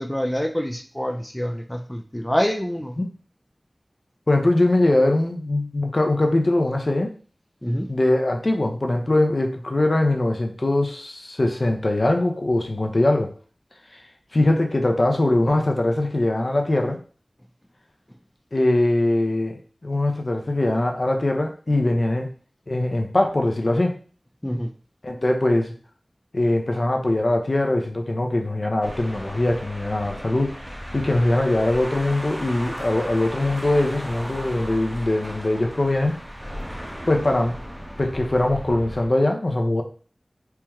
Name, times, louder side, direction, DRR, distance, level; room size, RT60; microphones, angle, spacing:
voice 1, 0.0-3.0 7.6-7.9 24.4-24.7, equal, 15° left, 4 dB, 0.4 m, -26 dB
voice 2, 4.3-7.1 7.9-13.3 14.3-17.0 18.5-22.3 22.7-23.9 25.0-25.7 26.3-30.5 30.9-36.2 37.1-37.6 38.0-39.8, left 1 dB, 55° left, 3 dB, 0.6 m, -21 dB
sound 1, 28.8-39.1, equal, 10° right, 0.8 m, -36 dB
4.5 x 2.1 x 3.5 m, 0.41 s
wide cardioid pair, 50°, 0 cm